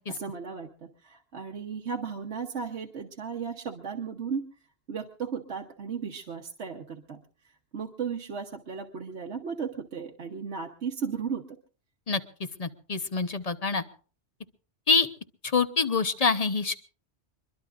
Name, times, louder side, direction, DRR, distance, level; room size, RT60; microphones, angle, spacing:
voice 1, 0.1-4.5 4.9-7.2 7.7-11.4, right 6 dB, 70° right, 2 dB, 1.4 m, -35 dB
voice 2, 12.6-13.8 14.9-15.1 15.4-16.8, left 4 dB, 35° left, 11 dB, 0.9 m, -25 dB
23.5 x 22.5 x 2.5 m, 0.40 s
omnidirectional pair, 1.2 m